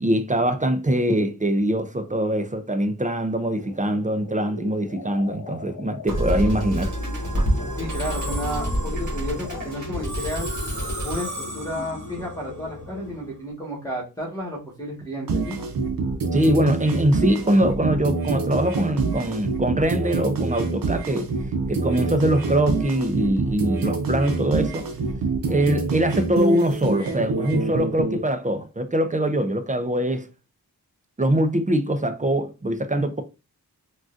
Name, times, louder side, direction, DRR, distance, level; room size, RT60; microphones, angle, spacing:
voice 1, 0.0-6.9 16.3-21.3 21.7-24.9 25.5-30.3 31.2-33.2, right 1 dB, 20° right, 0.4 m, -23 dB
sound 1, 3.4-13.4, left 3 dB, 70° left, 0.8 m, -40 dB
Musical instrument, 6.1-13.4, equal, 50° right, 1.4 m, -28 dB
voice 2, 7.8-10.5 11.0-15.6, equal, 10° left, 1.4 m, -32 dB
sound 2, 15.3-28.2, right 3 dB, 65° right, 0.8 m, -26 dB
3.7 x 2.4 x 2.5 m
wide cardioid pair, 65°, 37 cm